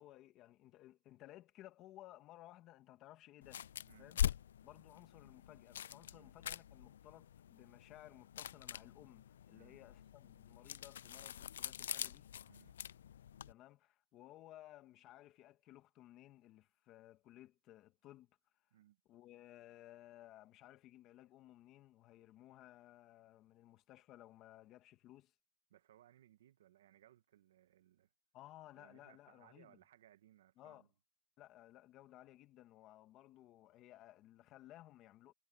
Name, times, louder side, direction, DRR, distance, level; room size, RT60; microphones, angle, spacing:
voice 1, 0.0-3.6 4.0-4.2 4.6-12.3 13.5-18.3 19.1-25.3 28.3-29.8 30.6-30.9 31.4-35.3, left 14 dB, 25° left, 2.0 m, -59 dB
sound 1, 3.4-13.5, left 10 dB, 70° left, 0.4 m, -44 dB
voice 2, 9.5-9.8 12.5-12.8 18.7-19.0 25.7-28.1 28.7-30.9, right 12 dB, 60° right, 2.0 m, -66 dB
hypercardioid pair, 165°, 0 cm